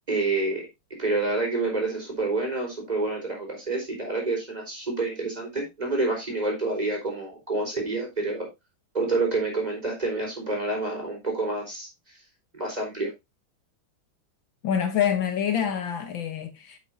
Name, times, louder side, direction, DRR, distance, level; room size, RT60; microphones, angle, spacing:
voice 1, 0.1-0.7 1.0-8.5 8.9-12.2 12.5-13.1, right 2 dB, 20° right, 4.5 m, -28 dB
voice 2, 14.6-16.8, left 8 dB, 65° left, 1.7 m, -26 dB
8.9 x 8.5 x 2.6 m
omnidirectional pair, 2.3 m